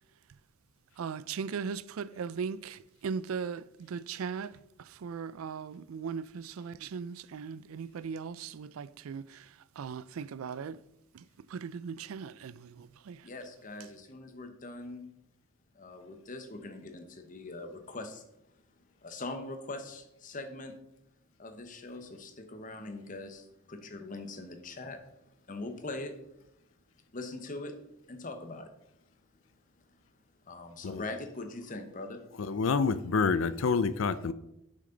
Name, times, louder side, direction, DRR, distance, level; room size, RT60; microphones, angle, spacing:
voice 1, 1.0-10.8 11.1-11.2 11.5-13.3, right 6 dB, 90° right, 0.4 m, -38 dB
voice 2, 13.2-15.1 15.7-18.2 19.0-20.8 21.4-25.0 25.5-26.2 27.1-27.7 28.1-28.7 30.4-32.2, left 2 dB, 40° left, 1.1 m, -42 dB
voice 3, 32.4-34.3, left 5 dB, 70° left, 0.5 m, -28 dB
9.6 x 6.3 x 3.9 m
head